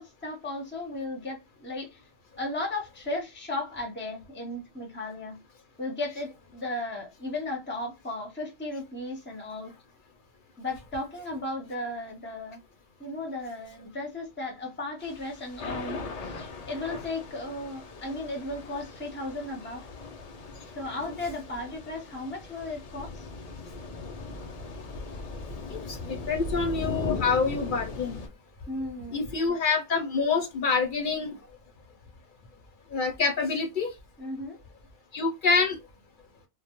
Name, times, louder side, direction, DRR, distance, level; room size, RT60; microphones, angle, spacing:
voice 1, 0.0-2.0 2.4-5.4 5.8-9.7 10.6-12.6 13.0-19.9 20.8-23.3 28.7-29.3 34.2-34.6, left 2 dB, 10° left, 0.6 m, -35 dB
Thunder / Rain, 15.0-28.3, left 3 dB, 80° left, 0.3 m, -39 dB
voice 2, 26.1-28.2 29.1-31.3 32.9-33.9 35.1-35.7, left 4 dB, 55° left, 0.7 m, -26 dB
2.2 x 2.1 x 2.8 m
omnidirectional pair, 1.2 m